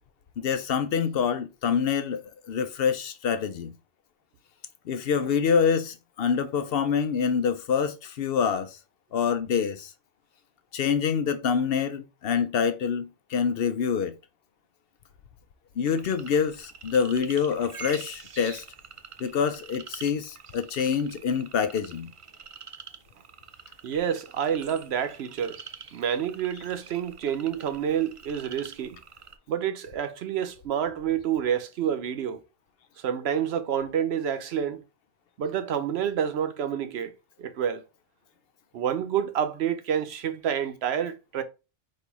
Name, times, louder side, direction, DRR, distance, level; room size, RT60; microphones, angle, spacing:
voice 1, 0.4-2.2 2.5-3.7 4.9-8.8 9.1-9.9 10.7-14.1 15.8-18.6 19.2-22.1, left 6 dB, 65° left, 0.7 m, -26 dB
sound 1, 15.9-29.4, right 6 dB, 50° right, 0.4 m, -46 dB
voice 2, 23.8-25.6 25.9-29.0 29.5-32.4 33.0-34.8 35.4-37.1 37.4-37.8 38.7-41.4, right 9 dB, 70° right, 0.9 m, -28 dB
4.3 x 2.5 x 4.6 m
omnidirectional pair, 1.1 m